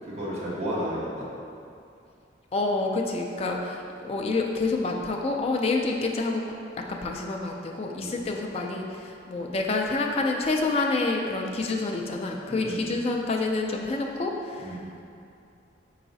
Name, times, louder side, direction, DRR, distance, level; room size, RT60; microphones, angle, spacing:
voice 1, 0.0-1.3 8.0-8.2 12.5-12.9 14.6-14.8, equal, 40° right, -9 dB, 1.0 m, -33 dB
voice 2, 2.5-6.4 6.9-14.8, left 3 dB, 35° left, 1 dB, 0.3 m, -28 dB
4.7 x 4.0 x 2.6 m, 2.5 s
head